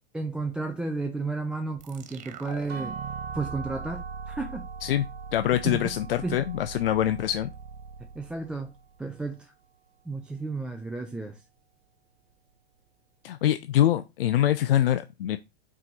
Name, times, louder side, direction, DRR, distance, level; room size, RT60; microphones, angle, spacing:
voice 1, 0.1-2.9 3.3-4.7 5.6-5.9 6.2-6.4 8.1-9.5 10.1-11.4, right 3 dB, 5° right, 0.4 m, -33 dB
sound 1, 1.8-9.1, right 6 dB, 25° right, 0.9 m, -42 dB
sound 2, 2.7-8.5, right 5 dB, 70° right, 1.1 m, -43 dB
voice 2, 5.3-7.5 13.2-15.4, left 12 dB, 60° left, 0.5 m, -24 dB
5.7 x 4.8 x 5.2 m
figure-of-eight pair, 100°, 31 cm